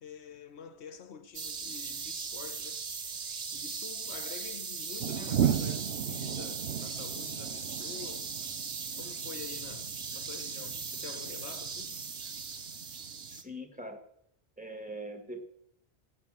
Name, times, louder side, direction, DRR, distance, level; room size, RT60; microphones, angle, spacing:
voice 1, 0.0-2.9 3.5-8.3 9.0-12.0, left 7 dB, 80° left, 1.2 m, -47 dB
sound 1, 1.3-13.4, right 5 dB, 45° right, 1.1 m, -39 dB
sound 2, 5.0-13.4, right 9 dB, 75° right, 1.0 m, -36 dB
voice 2, 13.3-14.0 14.6-15.5, right 1 dB, 5° right, 1.6 m, -42 dB
15.5 x 9.4 x 7.5 m
omnidirectional pair, 1.1 m